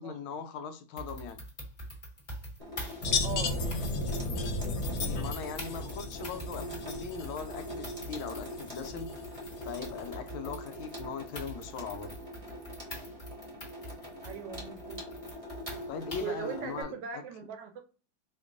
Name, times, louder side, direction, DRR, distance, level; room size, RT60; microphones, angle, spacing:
voice 1, 0.0-1.4 5.0-9.1 9.6-12.2 15.9-17.2, left 6 dB, 85° left, 1.4 m, -40 dB
sound 1, 1.0-16.4, equal, 30° left, 1.2 m, -45 dB
Water tap faucet / Sink (filling or washing), 2.6-16.8, equal, 30° right, 0.7 m, -43 dB
sound 2, 3.0-10.0, left 3 dB, 65° left, 1.0 m, -35 dB
voice 2, 3.2-3.6 14.2-15.0 16.2-17.8, right 7 dB, 75° right, 1.1 m, -39 dB
4.4 x 2.9 x 2.5 m
omnidirectional pair, 2.3 m